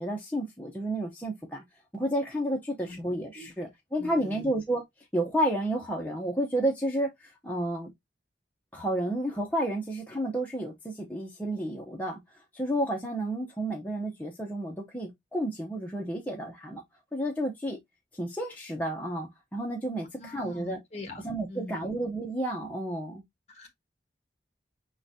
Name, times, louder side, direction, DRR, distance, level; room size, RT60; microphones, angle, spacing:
voice 1, 0.0-1.6 1.9-4.8 5.1-7.9 8.7-16.8 17.1-17.8 18.1-20.8 21.2-23.2, right 1 dB, 10° left, 0.7 m, -31 dB
voice 2, 4.0-4.5 20.2-21.9 23.5-23.7, left 1 dB, 35° left, 1.3 m, -42 dB
5.3 x 3.8 x 2.6 m
head